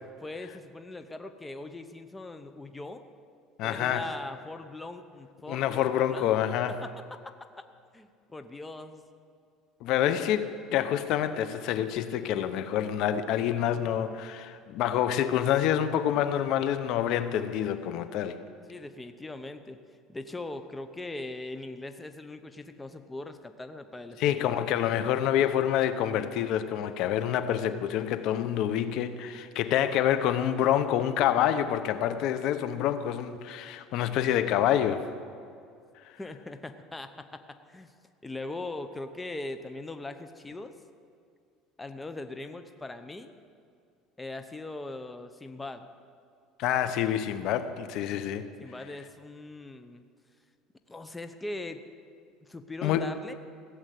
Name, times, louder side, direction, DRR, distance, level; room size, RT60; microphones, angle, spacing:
voice 1, 0.2-3.0 3.6-7.2 7.9-9.0 18.7-19.8 20.1-24.5 36.2-37.9 38.2-40.7 41.8-43.3 44.2-45.9 48.6-50.0 50.9-51.8 52.4-53.3, left 2 dB, 10° left, 0.8 m, -40 dB
voice 2, 3.6-4.0 5.5-6.8 9.8-10.4 10.7-18.4 24.2-35.1 46.6-48.5 52.8-53.1, left 10 dB, 65° left, 0.8 m, -27 dB
16.0 x 7.8 x 9.4 m
cardioid pair, 125°, 0 cm